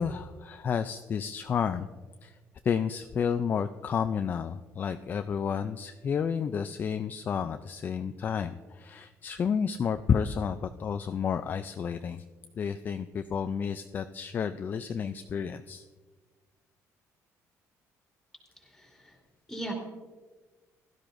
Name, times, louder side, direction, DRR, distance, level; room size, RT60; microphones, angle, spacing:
voice 1, 0.0-1.9 2.2-2.4 2.6-12.2 12.6-15.8, left 7 dB, 30° left, 9 dB, 0.3 m, -31 dB
voice 2, 18.6-19.2 19.5-19.7, right 1 dB, 5° left, -1 dB, 2.6 m, -39 dB
16.5 x 12.5 x 2.6 m, 1.3 s
cardioid pair, 155°, 6 cm